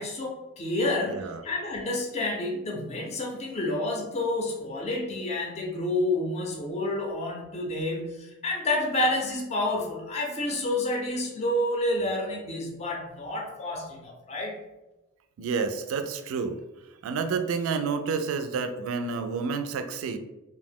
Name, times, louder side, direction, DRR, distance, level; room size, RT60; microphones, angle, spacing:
voice 1, 0.0-14.6, left 1 dB, 30° left, -1 dB, 0.4 m, -29 dB
voice 2, 1.1-1.4 15.4-16.6 17.0-20.2, right 5 dB, 80° right, 8 dB, 0.3 m, -29 dB
2.7 x 2.0 x 3.5 m, 1.0 s
head